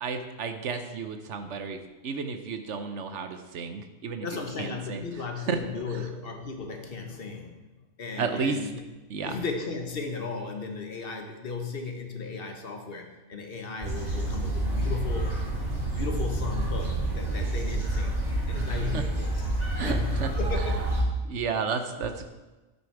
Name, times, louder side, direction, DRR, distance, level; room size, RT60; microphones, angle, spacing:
voice 1, 0.0-4.3 4.6-5.0 5.5-5.6 8.2-8.6 9.1-9.4 18.9-19.0 19.8-20.3 20.6-20.7 21.2-22.3, right 5 dB, 65° right, 8 dB, 1.1 m, -32 dB
voice 2, 4.2-7.6 8.0-8.8 9.2-15.4 15.9-18.2 18.5-20.9, left 4 dB, 45° left, 4 dB, 1.4 m, -36 dB
sound 1, 13.8-21.0, right 1 dB, 30° right, 2.8 m, -28 dB
9.5 x 8.4 x 4.7 m, 1.1 s
omnidirectional pair, 1.4 m